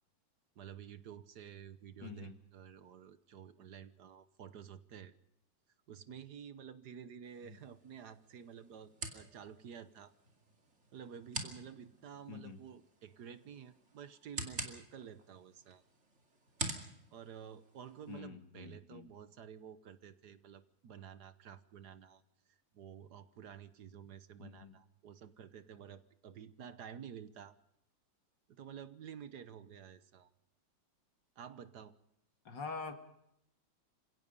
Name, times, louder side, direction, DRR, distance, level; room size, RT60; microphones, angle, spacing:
voice 1, 0.6-5.1 5.9-10.1 10.9-15.8 17.1-22.2 22.7-27.6 28.5-30.3 31.4-31.9, right 8 dB, 60° right, 13 dB, 1.5 m, -51 dB
voice 2, 2.0-2.3 12.3-12.6 18.1-19.1 24.4-24.7 32.5-32.9, left 5 dB, 70° left, 7 dB, 2.8 m, -45 dB
sound 1, 7.2-18.2, right 2 dB, 35° right, 2.8 m, -47 dB
28.0 x 17.0 x 5.4 m, 0.78 s
omnidirectional pair, 2.0 m